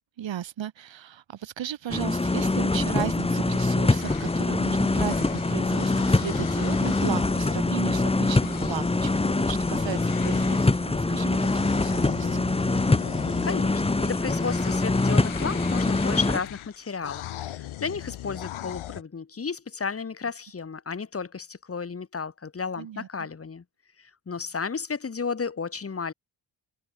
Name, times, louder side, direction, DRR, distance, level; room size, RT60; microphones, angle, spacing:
voice 1, 0.2-13.1 22.8-23.3, right 10 dB, 70° right, 7.3 m, -36 dB
sound 1, 1.9-16.4, left 2 dB, 10° left, 1.6 m, -24 dB
sound 2, 3.9-10.8 11.3-19.0, left 13 dB, 90° left, 4.9 m, -39 dB
voice 2, 13.4-23.6 24.0-26.1, left 5 dB, 30° left, 3.1 m, -33 dB
cardioid pair, 125°, 47 cm